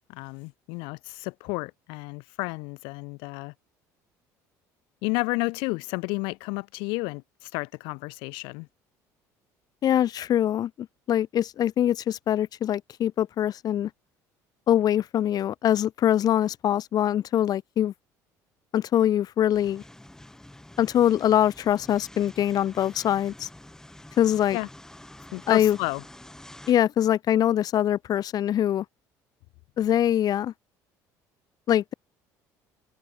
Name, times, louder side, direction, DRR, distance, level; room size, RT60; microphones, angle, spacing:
voice 1, 0.1-3.5 5.0-8.7 24.5-24.7 25.3-26.0, left 29 dB, 80° left, 2.0 m, -31 dB
voice 2, 9.8-13.9 14.7-17.9 18.7-19.8 20.8-23.5 24.2-24.6 25.5-25.8 26.7-28.8 29.8-30.5 31.7-31.9, left 11 dB, 50° left, 1.0 m, -23 dB
sound 1, 19.5-26.7, left 1 dB, 5° left, 2.2 m, -48 dB
supercardioid pair, 95°, 8 cm